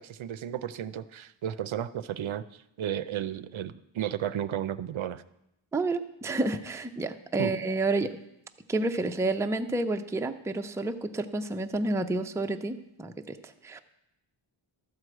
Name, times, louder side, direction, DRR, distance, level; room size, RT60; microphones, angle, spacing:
voice 1, 0.0-2.4 2.8-5.2 7.4-7.5, right 10 dB, 75° right, 14 dB, 0.6 m, -33 dB
voice 2, 5.7-8.1 8.7-13.8, right 2 dB, 5° right, 6 dB, 0.4 m, -30 dB
12.5 x 4.7 x 7.7 m, 0.83 s
wide cardioid pair, 140°, 49 cm